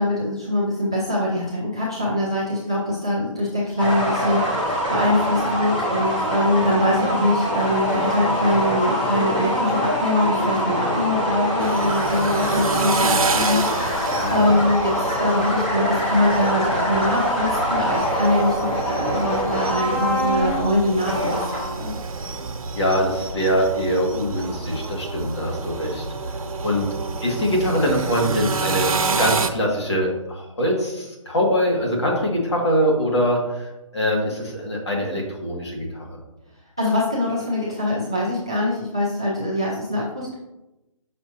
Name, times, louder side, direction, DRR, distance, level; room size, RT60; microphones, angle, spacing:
voice 1, 0.0-13.6 13.9-21.9 36.8-40.3, left 1 dB, 10° right, -7 dB, 0.3 m, -23 dB
sound 1, 3.8-21.9, equal, 15° left, 0.8 m, -24 dB
sound 2, 11.6-29.5, right 4 dB, 85° right, 0.8 m, -29 dB
voice 2, 14.2-14.6 22.7-26.0 26.6-26.9 27.2-36.2, equal, 50° left, -1 dB, 2.1 m, -23 dB
7.6 x 6.0 x 2.8 m, 0.99 s
hypercardioid pair, 175°, 18 cm